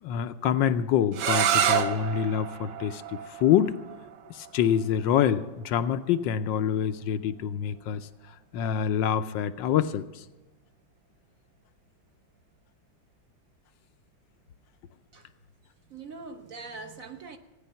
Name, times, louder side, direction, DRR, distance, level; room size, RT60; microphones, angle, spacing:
voice 1, 0.0-3.7 4.3-8.0 8.5-10.2, left 9 dB, 80° left, 1.4 m, -26 dB
sound 1, 1.1-6.9, right 9 dB, 70° right, 1.5 m, -30 dB
voice 2, 15.9-17.4, right 4 dB, 55° right, 1.2 m, -42 dB
16.0 x 9.8 x 5.7 m
omnidirectional pair, 2.0 m